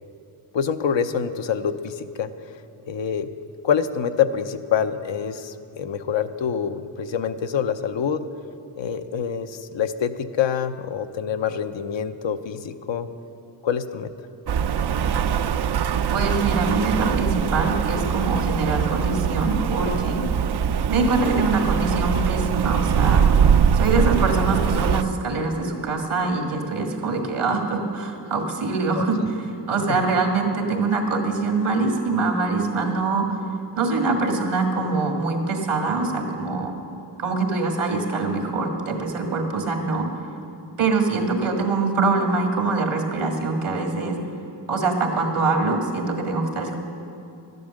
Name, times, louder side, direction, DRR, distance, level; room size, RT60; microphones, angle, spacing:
voice 1, 0.5-2.3 2.9-3.3 3.6-8.2 8.8-13.1 13.6-14.1 29.0-29.1 29.9-30.0, left 7 dB, 65° left, 9 dB, 0.8 m, -26 dB
Rain, 14.5-25.0, right 7 dB, 55° right, 0.6 m, -22 dB
voice 2, 16.1-20.3 20.9-23.3 23.7-29.4 29.7-33.4 33.8-36.7 37.2-40.1 40.8-44.2 44.7-46.8, right 3 dB, 80° right, 3 dB, 1.9 m, -24 dB
12.0 x 11.0 x 6.5 m, 2.8 s
cardioid pair, 60°, 49 cm